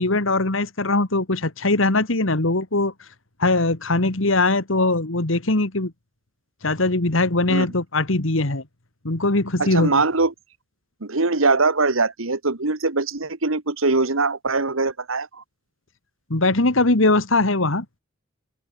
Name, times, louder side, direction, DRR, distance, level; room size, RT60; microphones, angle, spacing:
voice 1, 0.0-2.9 3.4-5.9 6.6-8.6 9.0-10.0 16.3-17.9, left 2 dB, 70° left, 2.2 m, -21 dB
voice 2, 9.6-10.3 11.0-15.4, right 3 dB, 85° right, 1.9 m, -22 dB
open air
head